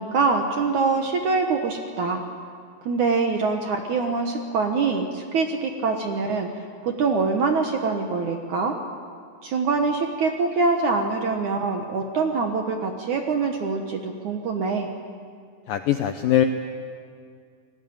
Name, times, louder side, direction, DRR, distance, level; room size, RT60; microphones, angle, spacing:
voice 1, 0.0-2.2 2.9-8.8 9.4-14.9, right 4 dB, 65° right, 4 dB, 2.1 m, -24 dB
voice 2, 15.7-16.5, left 11 dB, 75° left, 7 dB, 2.0 m, -21 dB
29.5 x 20.0 x 8.9 m, 2.1 s
omnidirectional pair, 5.0 m